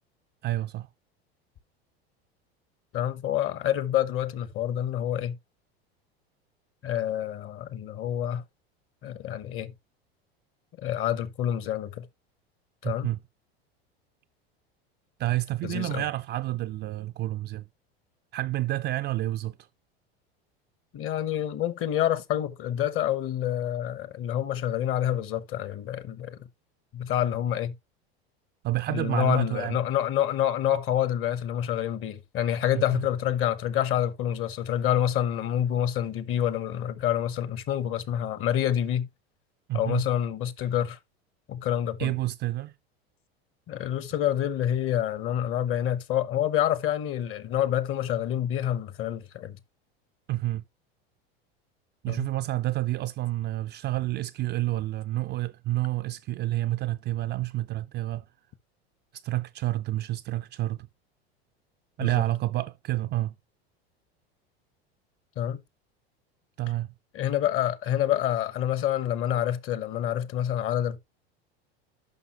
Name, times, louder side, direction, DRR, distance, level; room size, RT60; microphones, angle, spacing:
voice 1, 0.4-0.9 12.8-13.2 15.2-17.6 18.3-19.6 28.6-29.8 32.7-33.0 39.7-40.0 42.0-42.7 50.3-50.6 52.0-58.2 59.2-60.9 62.0-63.3 66.6-66.9, right 16 dB, 35° right, 0.4 m, -29 dB
voice 2, 2.9-5.4 6.8-8.4 9.0-9.7 10.8-12.0 12.8-13.1 15.6-16.0 20.9-26.4 26.9-27.7 28.9-39.1 39.7-41.0 41.5-42.1 43.7-49.6 52.1-52.3 62.0-62.2 65.4-65.6 67.1-71.0, left 11 dB, 45° left, 1.1 m, -27 dB
11.0 x 5.6 x 3.0 m
hypercardioid pair, 95°, 31 cm